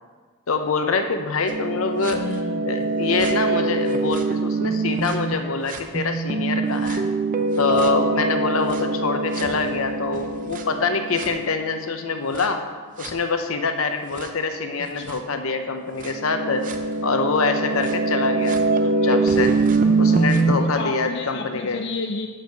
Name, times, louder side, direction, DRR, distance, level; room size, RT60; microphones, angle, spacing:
voice 1, 0.5-2.2 2.6-7.1 7.6-12.6 13.0-16.7 17.0-18.6 18.8-19.5 20.0-21.8, left 4 dB, 80° left, 7 dB, 0.8 m, -25 dB
sound 1, 1.5-5.3 5.7-11.8 12.3-12.4 13.0-13.1 14.2-14.3 15.1-15.2 16.0-20.5, right 3 dB, 40° right, 0.6 m, -23 dB
voice 2, 2.1-2.9 14.9-15.2 20.6-22.3, left 3 dB, 55° left, 4 dB, 0.4 m, -31 dB
8.1 x 5.1 x 6.5 m, 1.5 s
head